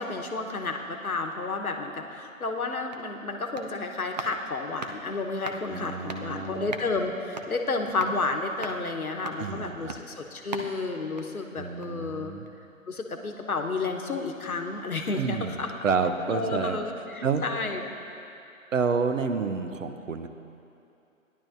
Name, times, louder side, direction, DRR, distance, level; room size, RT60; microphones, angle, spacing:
voice 1, 0.0-12.3 12.9-15.7 16.3-17.9, left 3 dB, 90° left, 4 dB, 1.1 m, -31 dB
sound 1, 2.8-12.1 12.4-12.5, right 2 dB, 30° right, 0.5 m, -42 dB
voice 2, 5.7-6.7 9.4-10.0 11.5-12.5 15.1-15.6 15.8-16.8 17.2-17.4 18.7-20.3, right 5 dB, 65° right, 8 dB, 0.9 m, -29 dB
16.5 x 11.0 x 2.6 m, 2.7 s
figure-of-eight pair, 140°, 42 cm